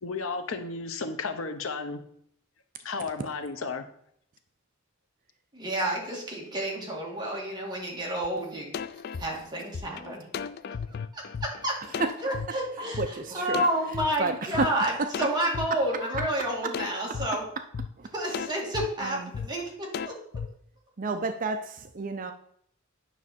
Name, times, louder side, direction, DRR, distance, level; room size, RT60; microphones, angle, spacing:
voice 1, 0.0-2.0 2.8-3.8, left 4 dB, 85° left, 7 dB, 0.9 m, -33 dB
voice 2, 5.5-8.8 9.2-10.3 10.9-11.8 12.2-17.4 18.1-20.2, right 1 dB, 20° right, -2 dB, 2.0 m, -30 dB
sound 1, 8.2-8.3 8.7-12.5 12.9-13.1 13.5-14.7 15.1-15.7 16.1-16.3 16.7-17.3 17.7-17.9 18.3-18.9 19.3-19.5 19.9-20.5, left 6 dB, 50° left, 0.4 m, -35 dB
voice 3, 13.0-13.6 14.2-14.7 15.0-15.1 16.6-16.7 18.0-18.1 19.0-19.3 21.0-22.3, right 3 dB, 40° right, 8 dB, 0.5 m, -30 dB
9.2 x 6.1 x 4.3 m, 0.67 s
head